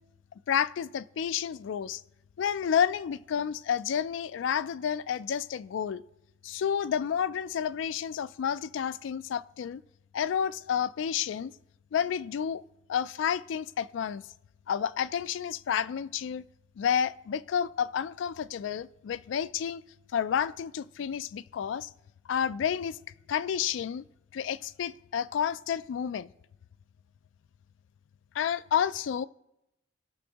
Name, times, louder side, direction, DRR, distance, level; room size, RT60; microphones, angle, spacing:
voice 1, 0.5-2.0 2.4-6.0 6.4-9.8 10.1-11.5 11.9-12.6 12.9-14.2 14.7-16.4 16.8-19.8 20.1-21.9 22.3-23.0 23.3-24.0 24.3-26.3 28.3-29.3, left 8 dB, 75° left, 0.3 m, -30 dB
18.0 x 6.2 x 2.9 m
head